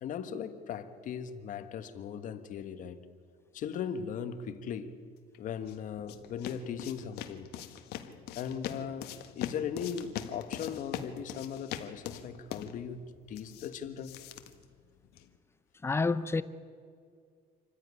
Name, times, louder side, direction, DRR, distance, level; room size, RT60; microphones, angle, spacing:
voice 1, 0.0-3.0 3.5-5.0 5.4-7.5 8.4-14.2, left 7 dB, 50° left, 1.5 m, -38 dB
sound 1, 5.3-15.4, left 10 dB, 80° left, 1.6 m, -43 dB
voice 2, 15.8-16.4, left 3 dB, 15° left, 0.7 m, -28 dB
26.5 x 15.5 x 9.9 m
cardioid pair, 155°, 16 cm